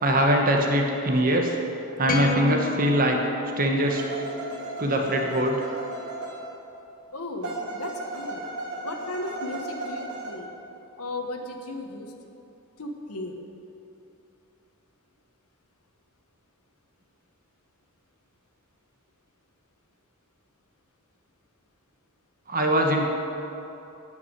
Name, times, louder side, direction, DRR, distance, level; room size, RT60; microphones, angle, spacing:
voice 1, 0.0-1.6 2.0-3.2 3.6-4.0 4.8-5.7 22.5-23.1, equal, 40° right, 2 dB, 1.1 m, -22 dB
sound 1, 2.1-4.4, left 3 dB, 40° left, 1.0 m, -31 dB
sound 2, 3.9-6.9 7.4-10.3, right 2 dB, 80° right, 2.2 m, -35 dB
voice 2, 7.1-8.5 8.8-10.5 11.0-12.1 12.8-13.3, left 2 dB, 80° left, 4 dB, 1.4 m, -35 dB
12.5 x 5.9 x 9.3 m, 2.9 s
head